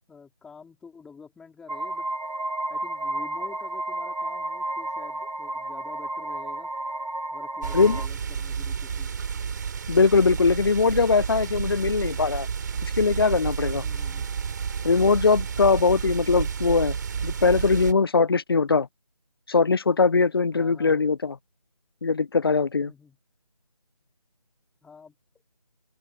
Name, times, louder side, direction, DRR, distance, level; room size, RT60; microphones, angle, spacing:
voice 1, 0.1-2.1 2.7-6.7 7.3-9.1 13.6-14.3 20.5-21.0 22.8-23.2 24.8-25.2, left 5 dB, 5° left, 4.2 m, -48 dB
sound 1, 1.7-8.1, right 1 dB, 75° right, 1.1 m, -32 dB
sound 2, 7.6-17.9, right 6 dB, 30° right, 3.9 m, -30 dB
voice 2, 9.9-12.5 12.8-13.8 14.8-16.9 17.2-18.9 19.5-21.4 22.0-22.9, left 4 dB, 35° left, 1.0 m, -21 dB
open air
figure-of-eight pair, 165°, 20 cm